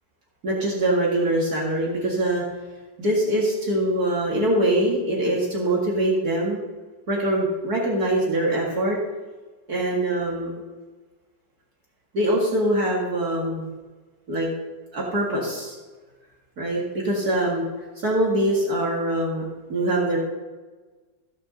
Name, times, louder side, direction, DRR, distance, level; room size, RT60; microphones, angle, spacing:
voice 1, 0.4-2.4 3.0-6.6 7.1-9.0 9.7-10.6 12.1-13.7 14.3-14.5 14.9-15.8 16.6-17.6 18.0-19.4 19.7-20.2, right 1 dB, 60° right, -3 dB, 2.5 m, -23 dB
15.0 x 6.3 x 6.5 m, 1.3 s
omnidirectional pair, 1.9 m